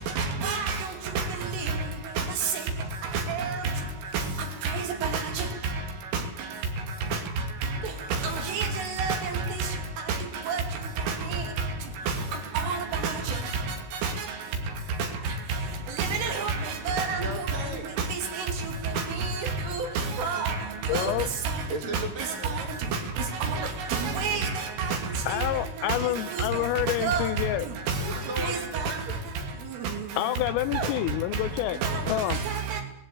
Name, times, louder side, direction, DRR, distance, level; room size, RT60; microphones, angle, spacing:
voice 1, 0.2-0.8 1.6-1.7 3.3-3.6 4.6-5.2 8.5-8.7 9.0-9.2 9.6-9.7 10.5-10.6 11.3-11.4 12.6-12.8 13.0-13.1 16.0-17.2 18.1-18.2 19.2-19.4 20.2-20.6 20.9-21.1 23.4-23.6 23.9-24.5 24.9-25.0 27.0-27.2 28.4-28.6 30.8-30.9 31.8-32.0 32.5-32.8, right 5 dB, 75° right, 5.1 m, -28 dB
voice 2, 17.2-17.9 21.7-22.8 28.0-29.2, right 1 dB, 50° right, 3.7 m, -36 dB
voice 3, 20.9-21.3 25.3-27.7 30.2-31.8 32.1-32.4, left 14 dB, 85° left, 3.5 m, -28 dB
19.0 x 17.0 x 8.4 m
omnidirectional pair, 5.9 m